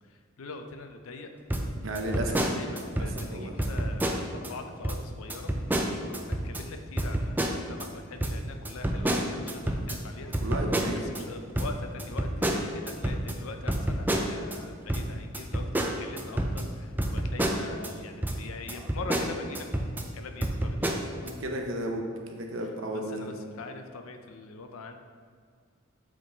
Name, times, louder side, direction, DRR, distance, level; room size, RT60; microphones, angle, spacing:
voice 1, 0.1-1.3 2.1-5.5 6.1-10.3 11.0-19.9 20.1-21.3 22.9-25.0, left 3 dB, 85° left, 6 dB, 0.6 m, -43 dB
sound 1, 1.5-3.3 3.6-4.5 4.8-5.0 5.3-6.6 7.0-7.9 8.2-11.2 11.6-14.6 14.9-17.9 18.2-18.4 18.7-20.1 20.4-21.3, right 1 dB, 10° right, 0.4 m, -29 dB
voice 2, 1.8-2.4 3.0-3.6 10.4-11.0 21.2-22.1 22.3-23.4, right 1 dB, 65° right, 2 dB, 0.8 m, -33 dB
7.7 x 3.7 x 3.9 m, 2.1 s
head